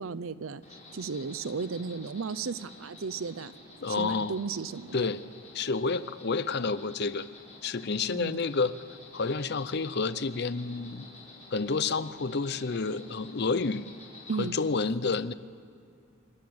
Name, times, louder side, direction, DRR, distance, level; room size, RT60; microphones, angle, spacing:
voice 1, 0.0-3.5 3.9-5.1 8.1-8.4 14.3-14.6, right 5 dB, 85° right, 15 dB, 0.7 m, -35 dB
Insect, 0.6-14.5, left 2 dB, 35° left, 4.5 m, -50 dB
voice 2, 3.8-4.4 4.9-5.2 5.5-7.3 7.6-8.8 9.1-11.1 11.5-13.9 14.4-15.3, left 4 dB, 55° left, 15 dB, 0.6 m, -29 dB
26.5 x 12.5 x 7.8 m, 2.4 s
head